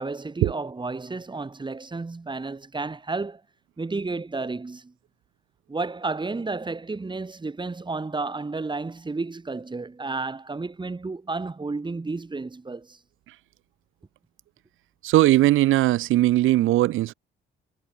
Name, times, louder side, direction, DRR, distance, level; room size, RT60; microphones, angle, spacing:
voice 1, 0.0-3.4 3.8-4.9 5.7-13.0, right 3 dB, 25° right, 5.9 m, -32 dB
voice 2, 15.0-17.1, right 15 dB, 85° right, 2.0 m, -19 dB
cardioid pair, 90°, 20 cm